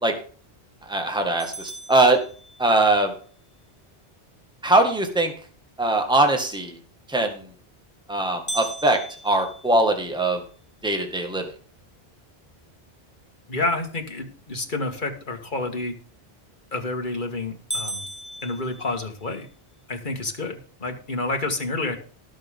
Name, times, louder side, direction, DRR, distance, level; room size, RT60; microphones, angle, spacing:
voice 1, 0.9-2.2 2.6-3.1 4.6-5.3 5.8-6.7 7.1-7.4 8.1-9.0 9.2-10.4 10.8-11.4, right 2 dB, 5° right, 4 dB, 1.8 m, -21 dB
sound 1, 1.4-3.0 8.5-10.6 11.1-11.2 11.7-11.8 12.5-12.8 16.4-16.8 17.2-17.3 17.7-19.4, equal, 15° left, 1.5 m, -36 dB
voice 2, 13.5-15.9 16.7-18.0 18.4-19.5 19.9-22.0, left 2 dB, 50° left, 4 dB, 2.1 m, -29 dB
18.5 x 6.6 x 3.7 m, 0.41 s
omnidirectional pair, 1.1 m